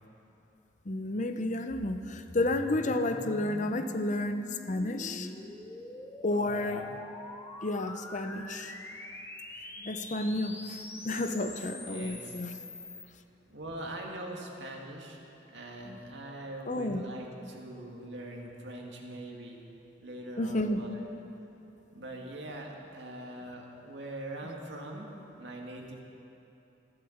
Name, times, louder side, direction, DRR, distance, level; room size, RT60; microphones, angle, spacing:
voice 1, 0.9-5.3 6.2-6.9 7.6-8.7 9.8-10.8 11.0-12.5 15.9-16.0 16.7-17.0 20.4-20.9, left 2 dB, 40° left, 8 dB, 0.7 m, -31 dB
sound 1, 1.7-13.1, left 1 dB, 15° left, 1.0 m, -45 dB
voice 2, 6.3-6.9 11.8-12.2 12.6-12.7 13.5-15.2 15.5-19.6 20.0-21.0 21.9-26.0, right 1 dB, 75° right, 0 dB, 2.1 m, -42 dB
14.5 x 12.0 x 7.3 m, 2.8 s
head